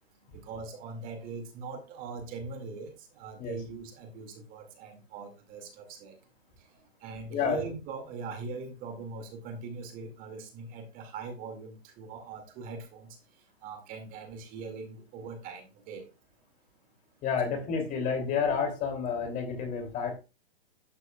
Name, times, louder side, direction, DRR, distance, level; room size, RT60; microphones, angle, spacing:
voice 1, 0.3-6.2 7.0-13.1 13.6-16.0 17.4-17.8, right 4 dB, 25° right, 5 dB, 2.2 m, -41 dB
voice 2, 7.3-7.6 17.2-20.2, left 6 dB, 25° left, 5 dB, 2.8 m, -30 dB
11.5 x 8.1 x 2.3 m, 0.29 s
hypercardioid pair, 130°, 31 cm